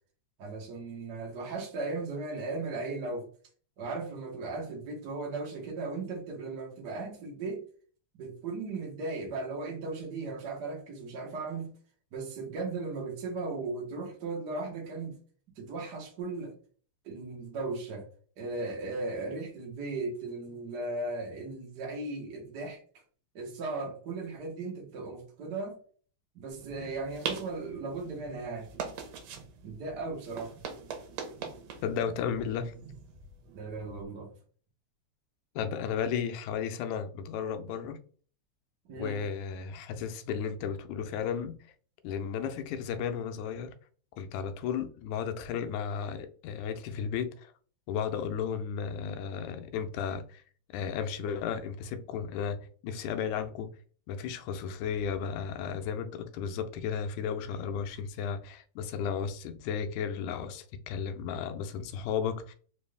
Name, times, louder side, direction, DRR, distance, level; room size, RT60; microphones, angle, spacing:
voice 1, 0.4-3.2 3.8-7.6 8.1-11.7 12.1-15.1 15.6-16.5 17.0-18.1 18.4-22.8 23.3-25.7 26.3-28.7 29.6-30.5 33.5-34.3 38.9-39.2, right 3 dB, 55° right, 1.1 m, -37 dB
sound 1, 26.5-34.0, right 6 dB, 75° right, 1.9 m, -42 dB
voice 2, 31.8-32.7 35.6-38.0 39.0-41.6 42.0-43.7 44.2-47.5 47.9-50.4 50.7-52.6 52.8-53.7 54.1-62.5, left 7 dB, 90° left, 2.0 m, -34 dB
4.8 x 2.6 x 3.2 m
omnidirectional pair, 3.4 m